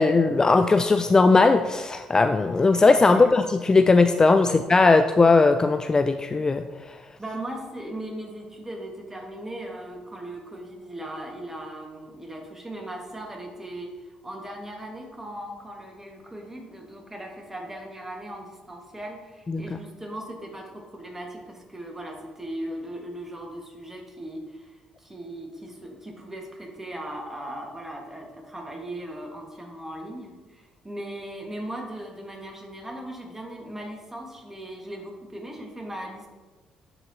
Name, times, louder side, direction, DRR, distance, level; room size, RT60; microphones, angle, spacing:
voice 1, 0.0-6.6 19.5-19.6, left 3 dB, 25° left, 8 dB, 0.3 m, -18 dB
voice 2, 7.2-36.3, right 1 dB, 15° right, 1 dB, 1.6 m, -38 dB
11.0 x 4.1 x 2.9 m, 1.2 s
hypercardioid pair, 55°, 2 cm